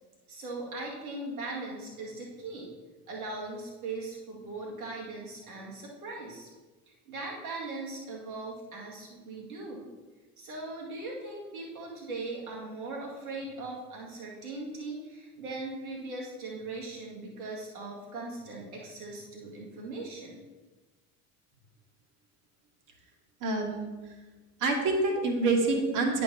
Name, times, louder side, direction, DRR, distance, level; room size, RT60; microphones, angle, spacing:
voice 1, 0.3-2.7 3.1-6.5 7.1-9.9 10.4-20.4, right 2 dB, 75° right, -3 dB, 2.2 m, -39 dB
voice 2, 23.4-23.9 24.6-26.2, right 3 dB, 45° right, 2 dB, 1.8 m, -27 dB
10.5 x 4.6 x 4.1 m, 1.3 s
figure-of-eight pair, 65°, 44 cm